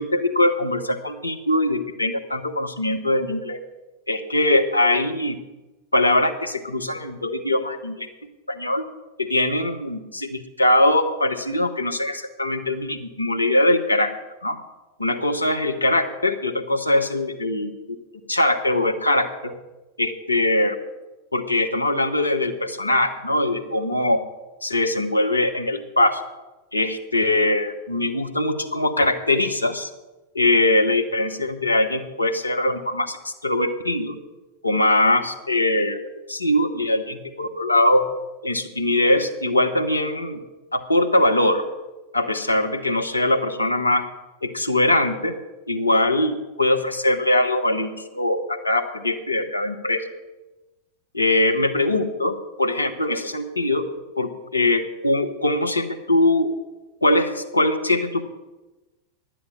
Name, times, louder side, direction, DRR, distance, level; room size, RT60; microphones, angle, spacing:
voice 1, 0.0-3.6 4.1-5.3 5.9-8.1 8.5-8.8 9.3-14.1 14.4-14.6 15.0-17.7 18.3-19.5 20.0-20.8 21.3-24.2 24.6-26.2 26.7-29.9 30.3-33.2 33.4-34.1 34.6-36.0 36.3-38.0 38.4-40.4 40.7-41.6 42.1-44.0 44.4-45.3 45.7-50.0 51.1-52.3 52.6-53.8 54.2-56.5 57.0-58.2, left 1 dB, 80° left, 5 dB, 1.1 m, -21 dB
11.0 x 7.6 x 8.3 m, 1.1 s
figure-of-eight pair, 90°, 0 cm